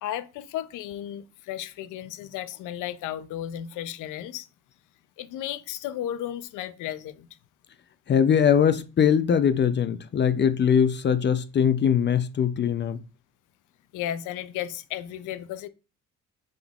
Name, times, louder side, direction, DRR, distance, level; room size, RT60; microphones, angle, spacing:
voice 1, 0.0-4.5 5.2-7.3 13.9-15.7, left 11 dB, 90° left, 0.5 m, -34 dB
voice 2, 8.1-13.0, left 8 dB, 35° left, 0.5 m, -21 dB
5.3 x 3.8 x 2.3 m
cardioid pair, 90°, 30 cm